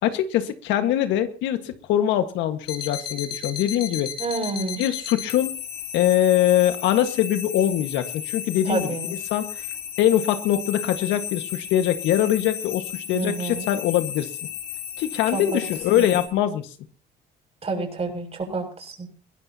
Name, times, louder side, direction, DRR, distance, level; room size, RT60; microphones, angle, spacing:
voice 1, 0.0-4.1 4.8-5.5 5.9-8.9 9.3-9.6 10.0-14.3 15.0-16.7, left 11 dB, 85° left, 8 dB, 1.7 m, -23 dB
sound 1, 2.6-16.3, left 9 dB, 65° left, 4.7 m, -34 dB
voice 2, 4.2-4.8 8.7-9.2 13.1-13.7 15.3-15.6 15.9-16.1 17.6-19.1, right 3 dB, 35° right, 2 dB, 7.1 m, -29 dB
22.0 x 17.0 x 2.9 m, 0.40 s
cardioid pair, 85°, 19 cm